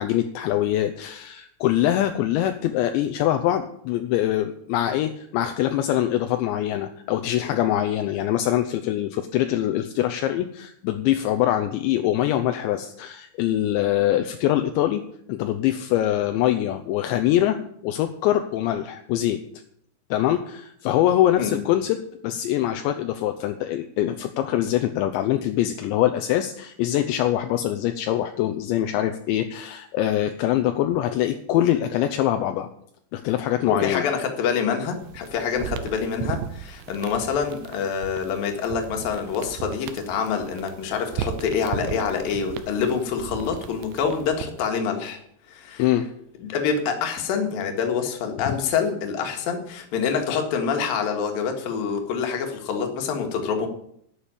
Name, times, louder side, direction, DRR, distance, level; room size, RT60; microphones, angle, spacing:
voice 1, 0.0-15.0 15.3-19.4 20.1-32.7 33.1-34.1 45.8-46.1, left 12 dB, 80° left, 7 dB, 2.9 m, -23 dB
voice 2, 33.7-45.2 45.5-45.9 46.4-53.7, left 6 dB, 60° left, 3 dB, 3.1 m, -26 dB
sound 1, 34.9-44.7, right 10 dB, 85° right, 3.0 m, -36 dB
11.5 x 6.9 x 8.8 m, 0.69 s
omnidirectional pair, 5.4 m